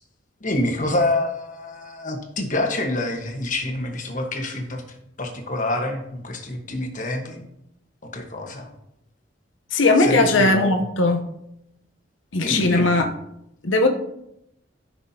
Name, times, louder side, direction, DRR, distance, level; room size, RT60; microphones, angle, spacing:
voice 1, 0.4-4.8 5.2-7.4 8.1-8.7 10.0-10.8 12.4-13.0, left 1 dB, 40° left, 1.3 m, -27 dB
voice 2, 9.7-11.2 12.3-13.1 13.6-13.9, left 2 dB, 90° left, 0.9 m, -18 dB
14.0 x 6.0 x 2.9 m
head